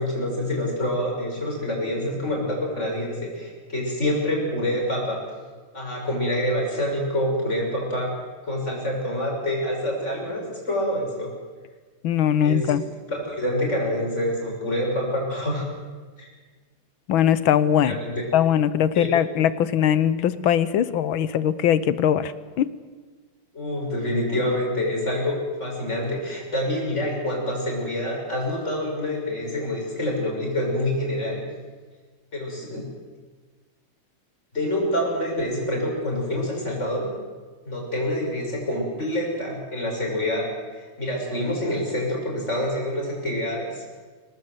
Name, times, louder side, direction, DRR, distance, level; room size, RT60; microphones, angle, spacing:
voice 1, 0.0-5.2 5.7-8.1 8.4-11.3 12.4-12.8 13.1-15.6 16.2-16.3 17.8-18.1 18.9-19.1 23.5-31.4 32.3-32.8 34.5-37.1 37.6-44.0, left 1 dB, 30° left, -1 dB, 6.9 m, -26 dB
voice 2, 12.0-12.8 17.1-18.0 18.3-22.3 22.6-22.7, left 9 dB, 70° left, 15 dB, 1.6 m, -21 dB
24.0 x 19.5 x 8.0 m, 1.4 s
omnidirectional pair, 2.4 m